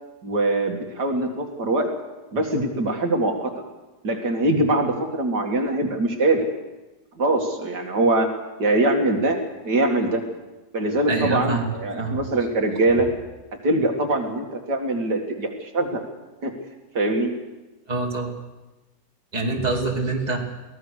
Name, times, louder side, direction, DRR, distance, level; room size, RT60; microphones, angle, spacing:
voice 1, 0.2-1.9 2.3-3.5 4.0-6.5 7.2-8.3 8.6-9.4 9.6-10.2 10.7-13.1 13.6-16.0 16.4-16.5 16.9-17.3, right 2 dB, 75° right, 2 dB, 2.9 m, -22 dB
voice 2, 11.1-12.2 17.9-18.3 19.3-20.4, right 3 dB, 25° right, 0 dB, 2.8 m, -25 dB
23.5 x 17.5 x 6.6 m, 1.1 s
omnidirectional pair, 1.8 m